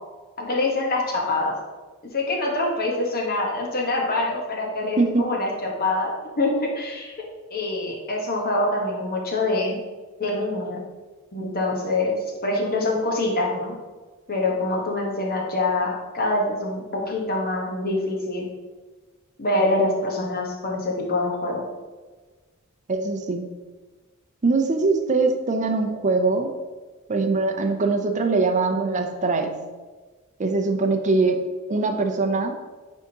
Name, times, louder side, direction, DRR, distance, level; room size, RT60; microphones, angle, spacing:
voice 1, 0.4-1.5 2.1-7.2 7.5-9.8 10.2-10.8 11.3-12.2 12.4-13.8 14.3-18.4 19.4-21.6, left 2 dB, 45° left, -1 dB, 1.2 m, -25 dB
voice 2, 22.9-23.5 24.4-26.5 27.1-29.6 30.4-31.4 31.7-32.6, right 3 dB, 35° right, 5 dB, 0.5 m, -22 dB
9.7 x 3.6 x 2.8 m, 1.3 s
head